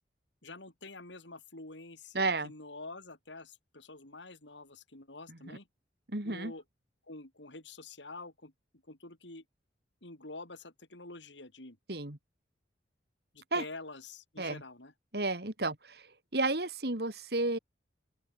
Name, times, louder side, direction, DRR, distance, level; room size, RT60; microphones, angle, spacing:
voice 1, 0.4-5.7 6.2-6.6 7.1-8.5 8.9-9.4 10.0-11.8 13.3-14.9, left 2 dB, 80° left, 4.4 m, -47 dB
voice 2, 2.1-2.5 5.3-5.4 6.1-6.5 11.9-12.2 13.5-13.6 14.4-14.6 15.1-16.0 16.3-17.6, right 2 dB, 60° right, 2.6 m, -32 dB
open air
head